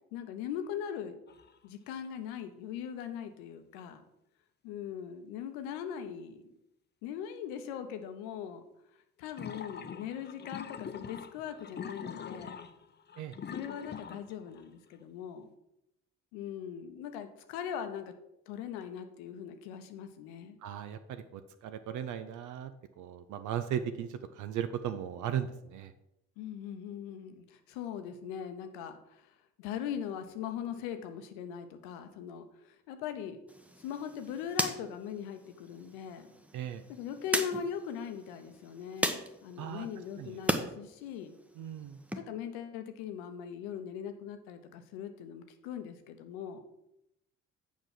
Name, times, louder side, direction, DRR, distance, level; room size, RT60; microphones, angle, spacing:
voice 1, 0.1-1.2 1.6-4.0 4.6-6.4 7.0-8.7 9.2-12.6 13.5-15.5 16.3-18.1 18.5-20.6 26.4-29.3 29.6-33.4 33.8-36.3 36.9-41.3 42.1-46.6, left 8 dB, 75° left, 8 dB, 0.8 m, -40 dB
sound 1, 1.3-1.6 2.0-2.1 9.3-14.6, left 7 dB, 30° left, 0.6 m, -44 dB
voice 2, 20.6-25.9 36.5-36.8 39.6-39.9 40.2-40.4 41.6-42.0, right 9 dB, 60° right, 10 dB, 0.6 m, -37 dB
sound 2, 33.5-40.7 41.1-42.2, equal, 5° right, 0.9 m, -37 dB
7.2 x 5.1 x 5.8 m, 0.84 s
hypercardioid pair, 45°, 35 cm